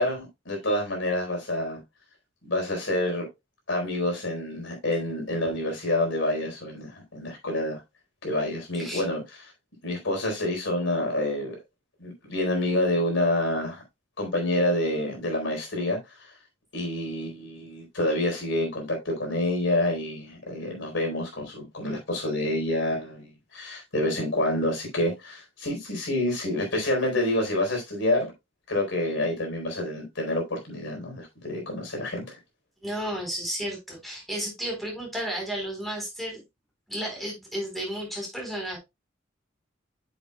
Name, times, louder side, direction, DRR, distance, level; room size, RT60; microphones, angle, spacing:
voice 1, 0.0-1.8 2.4-3.3 3.7-7.8 8.2-9.2 9.8-11.6 12.0-13.8 14.2-16.3 16.7-28.3 28.7-32.4, left 1 dB, 75° left, 4.2 m, -28 dB
voice 2, 32.8-36.4 36.9-38.8, equal, ahead, 4.0 m, -33 dB
8.7 x 7.3 x 2.3 m
head